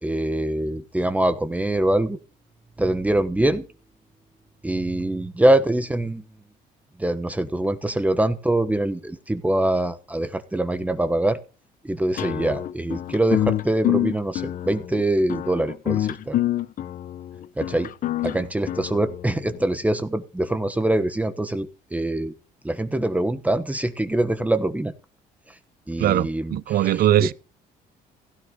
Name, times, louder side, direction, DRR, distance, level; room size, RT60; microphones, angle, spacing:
voice 1, 0.0-2.2 2.8-3.7 4.6-6.2 7.0-11.4 11.8-16.4 17.6-17.9 18.2-22.3 22.6-24.9 25.9-27.3, right 1 dB, 10° right, 1.2 m, -24 dB
sound 1, 12.2-19.6, left 12 dB, 55° left, 0.9 m, -27 dB
voice 2, 26.0-27.3, right 12 dB, 65° right, 0.8 m, -20 dB
16.0 x 9.8 x 3.8 m
cardioid pair, 110°, 17 cm